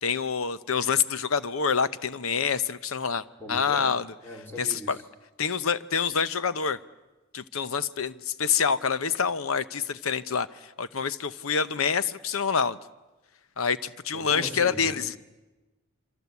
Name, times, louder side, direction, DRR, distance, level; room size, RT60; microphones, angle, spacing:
voice 1, 0.0-4.1 4.6-5.0 5.4-6.8 7.3-12.8 13.6-15.1, left 6 dB, 75° left, 14 dB, 0.8 m, -27 dB
voice 2, 3.4-3.9 4.2-5.0 14.1-15.2, equal, 10° left, 2 dB, 2.5 m, -39 dB
27.0 x 24.5 x 8.3 m, 1.2 s
head